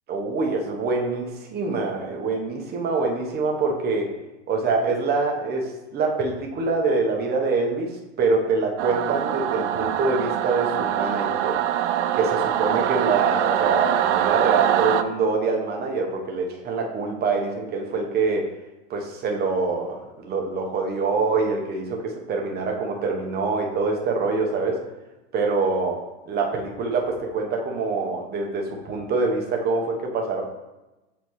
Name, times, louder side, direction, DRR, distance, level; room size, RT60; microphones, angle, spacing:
voice 1, 0.1-4.1 4.5-7.9 8.2-11.6 12.1-18.5 18.9-24.8 25.3-26.0 26.3-30.4, right 4 dB, 30° right, 1 dB, 1.0 m, -25 dB
Singing / Musical instrument, 8.8-15.0, right 11 dB, 75° right, 0.5 m, -23 dB
7.6 x 4.1 x 3.1 m, 1.0 s
supercardioid pair, 130°, 35 cm